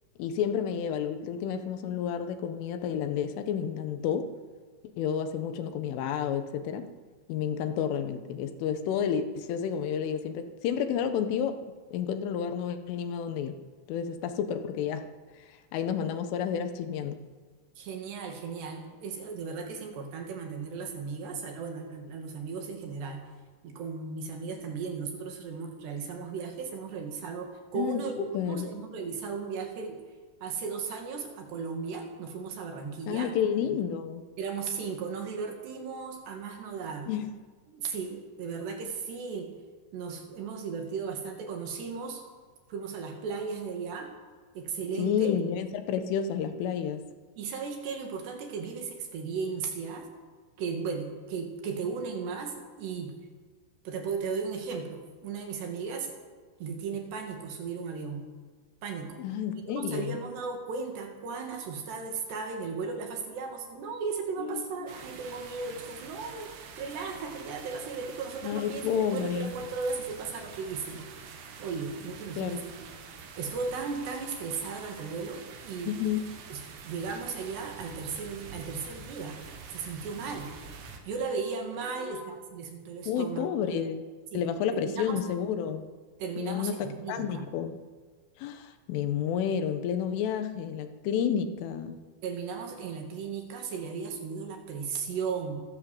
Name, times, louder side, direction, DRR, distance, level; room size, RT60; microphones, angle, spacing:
voice 1, 0.2-4.3 5.0-6.9 7.3-11.6 11.9-13.6 13.9-15.1 15.7-17.2 27.8-28.7 33.1-34.2 37.1-37.3 45.0-47.1 59.2-60.2 64.4-64.6 68.4-69.5 72.4-72.6 75.9-76.3 82.0-82.2 83.1-84.0 84.3-85.9 86.4-87.8 88.4-92.0, left 8 dB, 80° left, 8 dB, 3.8 m, -30 dB
voice 2, 17.8-23.2 23.6-30.0 30.4-33.3 34.4-37.1 37.7-39.5 39.9-42.2 42.7-44.1 44.5-45.3 47.4-50.1 50.6-53.1 53.9-56.2 56.6-58.3 58.8-59.2 59.6-71.1 71.6-72.9 73.4-75.9 76.5-79.4 79.7-80.5 81.0-83.5 84.3-84.4 84.7-85.2 86.2-87.4 92.2-95.6, right 5 dB, 60° right, 3 dB, 4.2 m, -36 dB
sound 1, 64.9-81.0, right 6 dB, 90° right, 4.8 m, -46 dB
25.5 x 13.5 x 7.9 m, 1.5 s
omnidirectional pair, 5.7 m